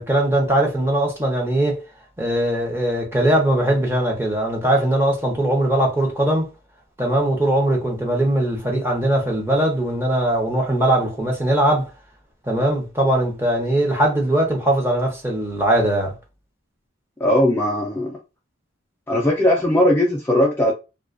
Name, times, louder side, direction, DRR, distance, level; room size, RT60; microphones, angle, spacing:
voice 1, 0.0-1.8 2.2-6.5 7.0-11.9 12.5-16.1, right 1 dB, 10° right, 0.7 m, -20 dB
voice 2, 17.2-18.2 19.1-20.7, left 1 dB, 10° left, 0.4 m, -18 dB
2.3 x 2.3 x 2.4 m
head